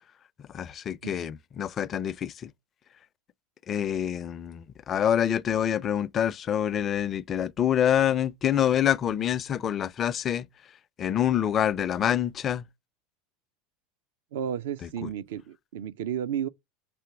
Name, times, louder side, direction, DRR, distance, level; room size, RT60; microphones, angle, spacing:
voice 1, 0.4-2.5 3.7-10.5 11.0-12.7 15.0-15.1, left 10 dB, 35° left, 0.5 m, -26 dB
voice 2, 14.3-16.5, right 9 dB, 70° right, 0.5 m, -32 dB
6.9 x 3.0 x 5.8 m
hypercardioid pair, 80°, 0 cm